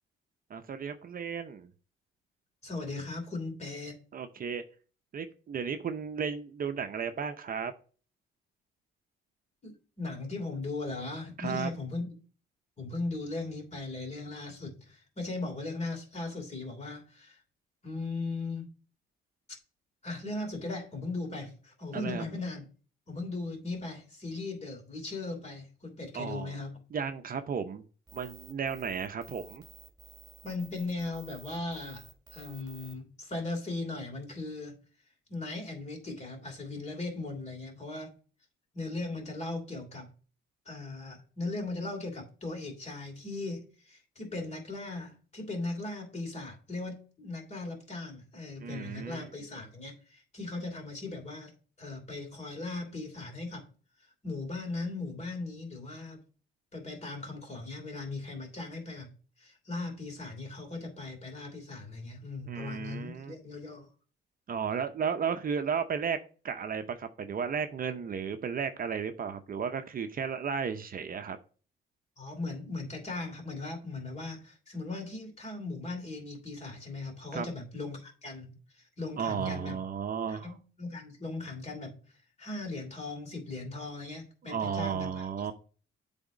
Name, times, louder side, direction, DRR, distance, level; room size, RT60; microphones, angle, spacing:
voice 1, 0.5-1.7 4.1-4.6 5.1-7.7 11.4-11.7 21.9-22.2 26.1-26.6 26.9-27.8 28.1-29.6 48.6-49.3 62.5-63.3 64.5-66.2 66.4-71.4 77.3-77.5 79.2-80.5 84.4-85.5, right 6 dB, 45° right, 0.7 m, -34 dB
voice 2, 2.6-4.0 9.6-12.1 12.8-17.4 17.8-18.7 20.0-22.6 23.1-26.8 30.4-34.8 35.3-38.1 38.7-40.1 40.7-53.7 54.2-56.2 56.7-63.9 72.2-79.8 80.3-82.0 82.4-85.3, left 2 dB, 35° left, 2.9 m, -38 dB
sound 1, 28.1-32.9, right 6 dB, 20° right, 1.8 m, -53 dB
8.0 x 3.5 x 5.1 m
cardioid pair, 90°, 20 cm